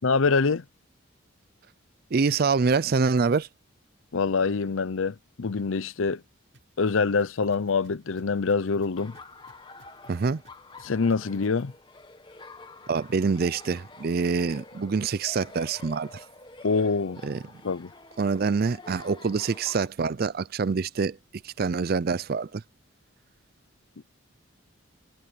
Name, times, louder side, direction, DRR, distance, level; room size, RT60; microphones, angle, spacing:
voice 1, 0.0-0.6 4.1-6.2 6.8-9.2 10.8-11.7 16.6-17.2 17.6-17.9 24.0-24.1, left 4 dB, 75° left, 0.6 m, -25 dB
voice 2, 2.1-3.5 10.1-10.4 12.9-16.2 17.2-17.4 18.2-21.2 21.4-22.6, right 4 dB, 45° right, 0.4 m, -25 dB
sound 1, 6.5-11.6, right 1 dB, 65° right, 7.6 m, -57 dB
Laughter, 9.0-19.9, left 3 dB, 25° left, 1.6 m, -48 dB
head